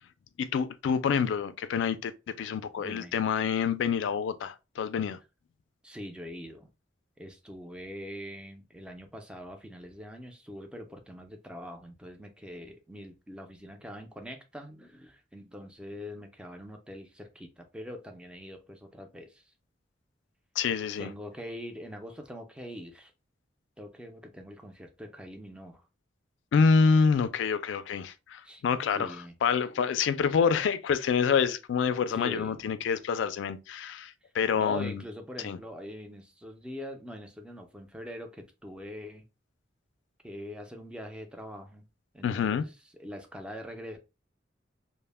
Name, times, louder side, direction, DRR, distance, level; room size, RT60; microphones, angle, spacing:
voice 1, 0.4-5.2 20.6-21.1 26.5-29.2 29.4-35.0 35.4-35.6 42.2-42.6, left 6 dB, 75° left, 0.3 m, -27 dB
voice 2, 2.8-3.1 5.8-6.7 7.2-19.4 21.0-23.1 23.8-25.8 28.4-28.6 28.9-29.3 32.1-32.6 34.5-39.3 40.2-41.9 42.1-42.7 43.0-44.0, equal, 5° right, 0.4 m, -43 dB
2.1 x 2.0 x 3.2 m
head